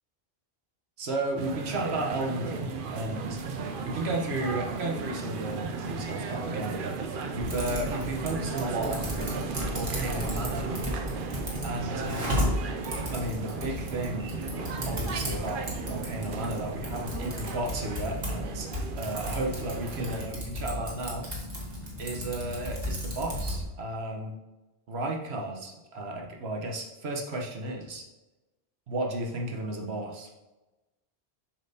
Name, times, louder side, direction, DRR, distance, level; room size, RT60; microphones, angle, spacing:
voice 1, 1.0-3.4 3.8-6.9 7.3-9.3 9.7-10.7 11.6-12.5 13.1-14.4 14.9-18.7 18.9-21.3 22.0-24.4 24.9-28.0 28.9-30.3, right 1 dB, 80° right, 1 dB, 1.3 m, -33 dB
sound 1, 1.4-20.3, right 4 dB, 60° right, 0.7 m, -35 dB
Typing, 7.4-23.6, left 1 dB, 45° right, 1.5 m, -35 dB
7.3 x 5.3 x 2.8 m, 1.1 s
omnidirectional pair, 1.1 m